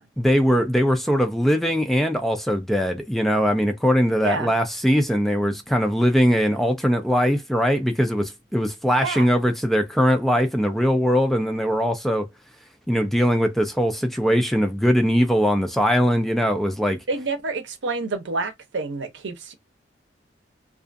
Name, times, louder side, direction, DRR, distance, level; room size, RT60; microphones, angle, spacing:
voice 1, 0.2-12.3 12.9-17.0, equal, ahead, 0.3 m, -21 dB
voice 2, 4.2-4.5 9.0-9.3 17.1-19.5, right 3 dB, 80° right, 0.7 m, -28 dB
2.5 x 2.4 x 2.5 m
head